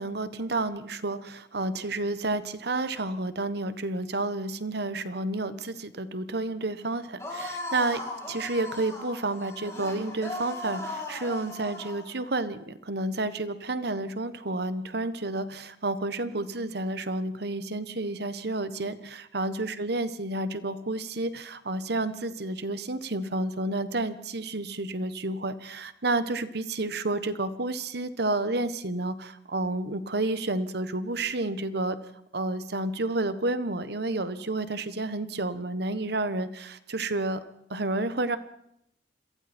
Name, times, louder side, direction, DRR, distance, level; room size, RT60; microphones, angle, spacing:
voice 1, 0.0-32.0 32.3-37.4 37.7-38.4, right 2 dB, 60° right, 12 dB, 1.3 m, -30 dB
sound 1, 7.2-12.1, left 2 dB, 15° left, 6.3 m, -37 dB
28.0 x 22.5 x 4.5 m, 0.76 s
head